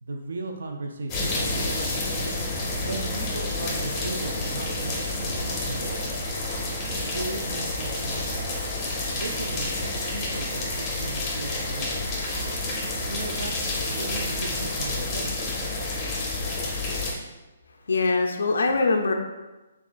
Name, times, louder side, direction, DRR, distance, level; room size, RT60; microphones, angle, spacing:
voice 1, 0.0-1.9 2.8-6.1 7.1-8.5 9.1-12.1 13.1-13.5 13.8-15.6, right 2 dB, 90° right, 3 dB, 0.4 m, -36 dB
sound 1, 1.1-17.1, left 2 dB, 15° left, 0.5 m, -29 dB
voice 2, 17.9-19.1, left 3 dB, 90° left, 3 dB, 0.4 m, -22 dB
7.0 x 2.4 x 2.4 m, 1.1 s
hypercardioid pair, 180°, 0 cm